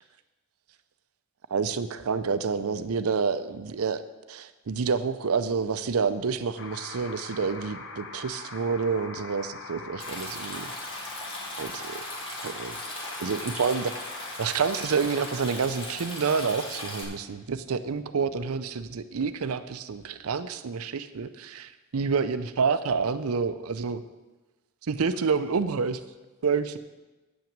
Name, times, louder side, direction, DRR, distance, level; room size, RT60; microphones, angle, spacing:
voice 1, 1.5-11.1 11.6-13.9 14.4-24.0 24.9-26.0 26.4-26.8, right 5 dB, 80° right, 12 dB, 0.6 m, -28 dB
sound 1, 6.6-15.4, left 3 dB, 60° left, 1.0 m, -42 dB
Stream, 10.0-17.0, left 1 dB, 25° left, 1.9 m, -38 dB
8.2 x 5.9 x 7.4 m, 1.1 s
head